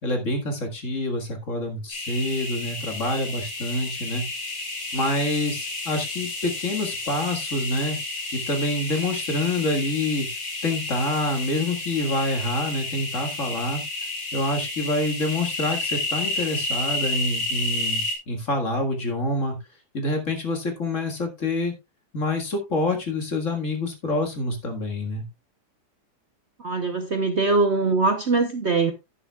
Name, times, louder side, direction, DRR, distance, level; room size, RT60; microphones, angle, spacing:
voice 1, 0.0-4.2 4.9-8.0 8.3-10.3 10.6-13.8 14.3-19.6 19.9-21.7 22.1-25.2, left 2 dB, 45° left, 2.1 m, -27 dB
sound 1, 1.9-18.1, left 2 dB, 75° left, 3.3 m, -31 dB
voice 2, 26.6-28.9, right 3 dB, 50° right, 0.9 m, -22 dB
11.0 x 10.0 x 2.3 m
omnidirectional pair, 2.0 m